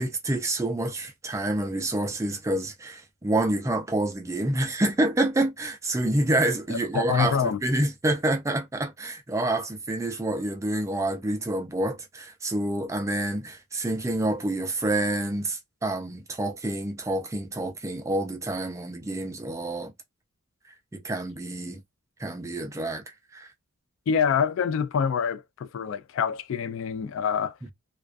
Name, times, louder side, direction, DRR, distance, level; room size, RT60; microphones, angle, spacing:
voice 1, 0.0-19.9 20.9-21.8 22.2-23.0 23.3-23.5, right 1 dB, 15° right, 0.4 m, -28 dB
voice 2, 6.7-7.6 24.1-27.6, left 7 dB, 65° left, 0.3 m, -26 dB
2.3 x 2.2 x 2.4 m
head